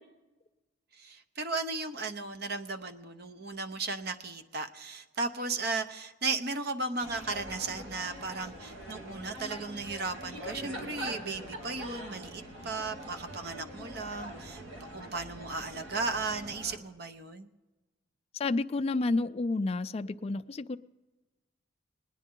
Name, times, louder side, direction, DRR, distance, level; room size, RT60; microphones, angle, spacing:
voice 1, 1.0-14.6 14.9-17.5, right 3 dB, 55° right, 8 dB, 0.8 m, -35 dB
sound 1, 7.0-16.8, equal, 80° right, 2.4 m, -43 dB
voice 2, 18.4-20.8, left 3 dB, 30° left, 9 dB, 0.3 m, -30 dB
20.5 x 9.9 x 3.7 m, 1.2 s
head